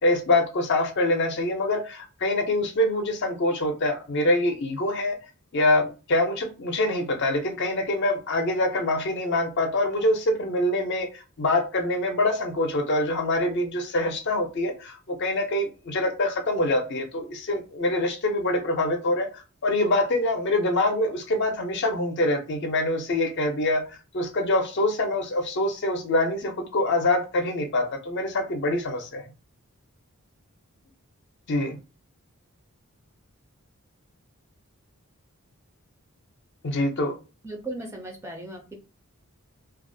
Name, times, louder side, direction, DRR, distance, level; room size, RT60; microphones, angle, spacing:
voice 1, 0.0-5.2 5.5-19.3 19.6-23.9 24.1-29.2 31.5-31.8 36.6-37.1, left 1 dB, 50° left, 0.5 m, -25 dB
voice 2, 37.4-38.7, right 2 dB, 10° right, 0.4 m, -36 dB
2.3 x 2.0 x 2.6 m
head